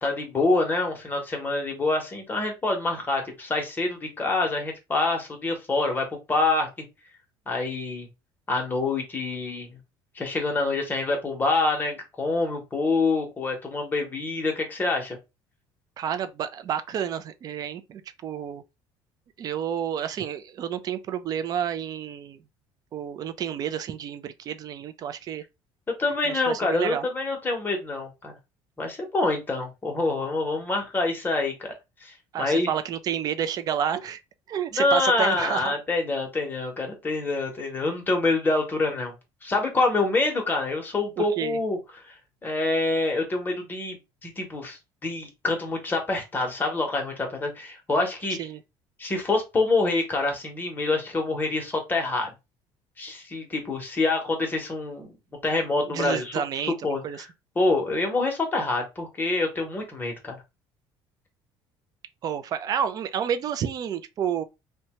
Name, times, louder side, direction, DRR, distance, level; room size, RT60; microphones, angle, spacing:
voice 1, 0.0-6.7 7.5-8.1 8.5-9.8 10.2-15.2 26.0-28.3 28.8-31.7 32.0-32.7 34.7-39.1 39.4-41.8 42.0-42.1 42.4-44.0 44.2-48.4 49.0-52.3 53.0-55.1 55.4-57.3 57.6-60.4, left 3 dB, 20° left, 0.8 m, -26 dB
voice 2, 16.0-18.6 19.4-22.4 22.9-25.4 26.2-27.1 32.3-34.2 34.5-35.7 41.2-41.6 48.4-48.6 55.9-56.7 57.0-57.2 62.2-64.4, right 9 dB, 40° right, 0.3 m, -30 dB
2.7 x 2.2 x 2.8 m
cardioid pair, 140°, 10 cm